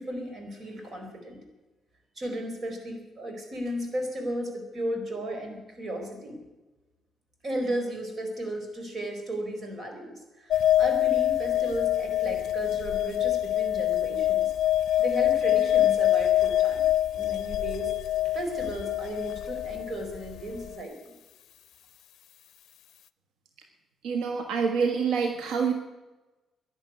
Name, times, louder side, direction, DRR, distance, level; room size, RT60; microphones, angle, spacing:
voice 1, 0.0-1.4 2.2-6.4 7.4-14.5 15.0-16.8 17.1-17.9 18.3-21.1, right 1 dB, 45° right, 4 dB, 4.6 m, -35 dB
sound 1, 10.5-20.7, left 12 dB, 70° left, 0.5 m, -25 dB
voice 2, 24.0-25.7, right 6 dB, 90° right, 5 dB, 1.4 m, -26 dB
12.0 x 11.0 x 9.6 m, 1.1 s
cardioid pair, 90°, 0 cm